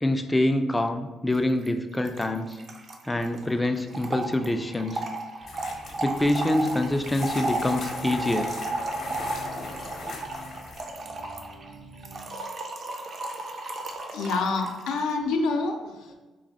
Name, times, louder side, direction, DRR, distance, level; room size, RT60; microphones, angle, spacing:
voice 1, 0.0-2.6 3.1-5.0 6.0-8.5, left 1 dB, 15° left, 7 dB, 0.3 m, -25 dB
Trickle dribble / Fill (with liquid), 1.3-1.4 1.6-1.7 1.9-15.0, right 2 dB, 50° right, 0.5 m, -34 dB
sound 1, 5.4-11.0, left 3 dB, 55° left, 0.7 m, -40 dB
sound 2, 6.9-12.2, equal, 70° right, 1.1 m, -46 dB
voice 2, 14.1-16.1, left 3 dB, 90° left, 3 dB, 0.4 m, -27 dB
3.1 x 2.3 x 4.0 m, 1.2 s
cardioid pair, 90°, 0 cm